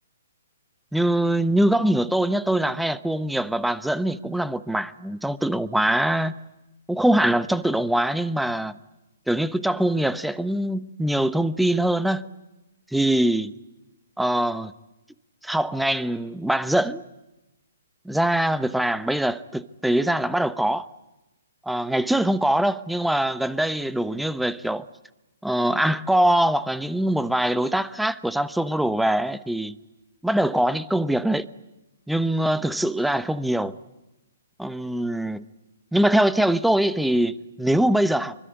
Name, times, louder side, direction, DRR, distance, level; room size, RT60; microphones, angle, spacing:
voice 1, 0.9-6.3 6.9-8.7 9.3-12.3 12.9-13.5 14.2-14.7 15.4-17.0 18.0-20.9 21.6-24.9 25.4-29.8 30.2-31.5 32.1-33.7 34.6-35.5 35.9-38.4, right 1 dB, ahead, 0.9 m, -23 dB
25.5 x 24.0 x 9.3 m
figure-of-eight pair, 130°, 0 cm